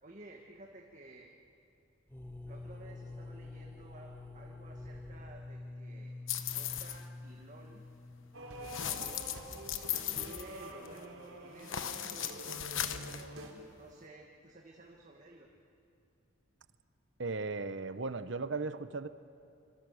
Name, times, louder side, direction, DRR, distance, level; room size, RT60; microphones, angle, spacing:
voice 1, 0.0-1.3 2.5-6.1 6.5-7.8 8.5-9.4 9.9-13.3 13.8-15.5, right 2 dB, 40° right, 0 dB, 1.7 m, -54 dB
sound 1, 2.1-9.8, left 2 dB, 10° left, 1.0 m, -48 dB
sound 2, 6.3-7.0 8.6-11.0 11.6-13.2, left 10 dB, 70° left, 1.1 m, -38 dB
sound 3, 8.3-13.5, right 1 dB, 90° right, 4.2 m, -46 dB
voice 2, 17.2-19.1, right 3 dB, 60° right, 12 dB, 0.9 m, -36 dB
26.0 x 26.0 x 6.4 m, 2.5 s
head